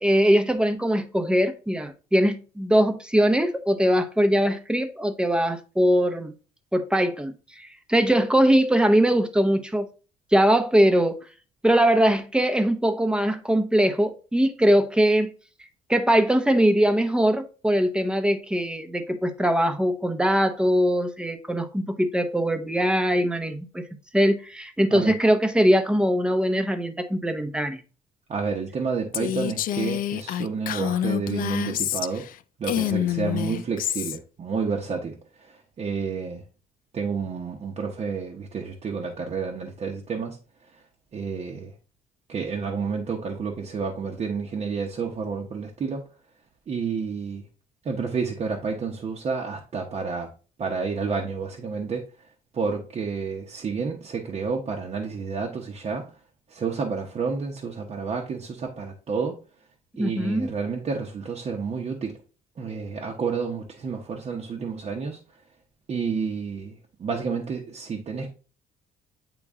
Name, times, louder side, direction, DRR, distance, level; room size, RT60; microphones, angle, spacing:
voice 1, 0.0-6.3 6.7-9.9 10.3-11.2 11.6-15.3 15.9-23.8 24.1-27.8 60.0-60.5, equal, 5° right, 0.7 m, -21 dB
voice 2, 28.3-32.3 32.6-36.4 36.9-40.4 40.7-40.8 41.1-41.7 42.3-46.0 46.7-47.4 47.8-50.3 50.6-52.0 52.5-56.1 56.5-59.3 60.0-62.2 62.6-65.2 65.9-68.3, right 5 dB, 40° right, 0.9 m, -30 dB
Female speech woman speaking, 29.1-32.3 32.6-34.2, left 11 dB, 55° left, 0.4 m, -27 dB
8.6 x 3.0 x 3.6 m
cardioid pair, 110°, 17 cm